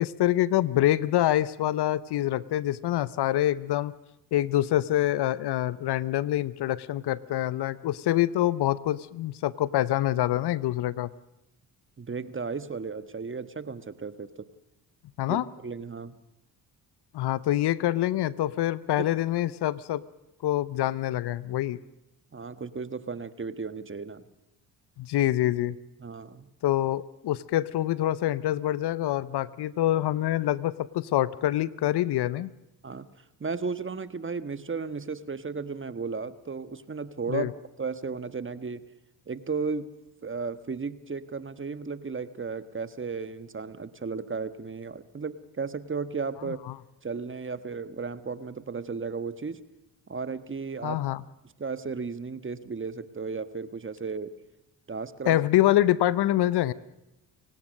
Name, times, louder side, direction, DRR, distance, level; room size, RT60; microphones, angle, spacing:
voice 1, 0.0-3.9 4.3-11.1 15.2-15.4 17.1-20.0 20.4-21.8 25.0-25.8 26.6-32.5 37.3-37.5 50.8-51.2 55.3-56.7, left 14 dB, 60° left, 19 dB, 0.9 m, -25 dB
voice 2, 12.0-14.5 15.3-16.2 19.0-19.1 22.3-24.3 26.0-26.5 32.8-33.1 33.4-37.5 37.8-38.8 39.3-39.9 40.2-46.6 47.0-49.6 50.1-51.0 51.6-54.3 54.9-55.4, right 4 dB, 25° right, 13 dB, 1.4 m, -34 dB
29.5 x 16.5 x 6.5 m, 0.89 s
hypercardioid pair, 55°, 45 cm